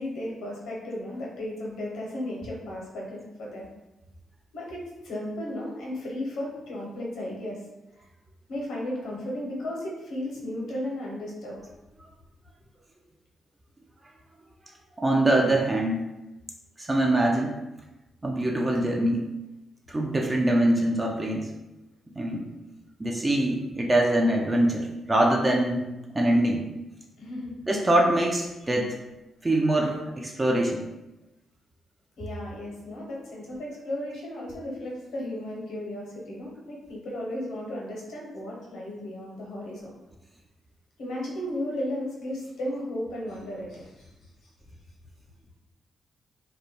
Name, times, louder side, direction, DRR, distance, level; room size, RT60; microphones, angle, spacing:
voice 1, 0.0-3.7 4.5-7.6 8.0-8.1 8.5-11.6 27.2-27.7 28.6-28.7 32.2-40.0 41.0-44.1, left 1 dB, 75° left, -3 dB, 0.7 m, -35 dB
voice 2, 15.0-16.0 16.8-17.5 18.2-19.2 19.9-21.5 22.2-22.5 23.0-26.7 27.7-29.0 29.4-30.9, right 1 dB, 25° right, 0 dB, 0.4 m, -24 dB
2.2 x 2.1 x 2.9 m, 1.0 s
supercardioid pair, 50°, 0 cm